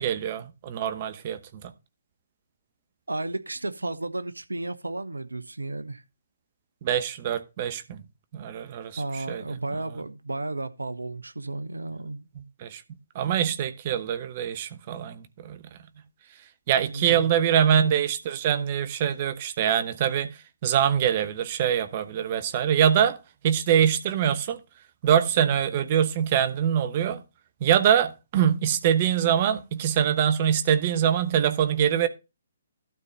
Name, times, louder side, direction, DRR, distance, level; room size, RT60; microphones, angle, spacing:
voice 1, 0.0-1.7 6.8-8.0 8.3-9.4 12.4-12.8 13.1-15.6 16.7-23.2 23.4-24.6 25.0-27.2 27.6-32.1, right 9 dB, 35° right, 1.0 m, -24 dB
voice 2, 3.1-6.0 9.0-12.2 16.9-17.3, right 2 dB, 75° right, 0.9 m, -33 dB
12.0 x 4.1 x 5.3 m
figure-of-eight pair, 130°, 0 cm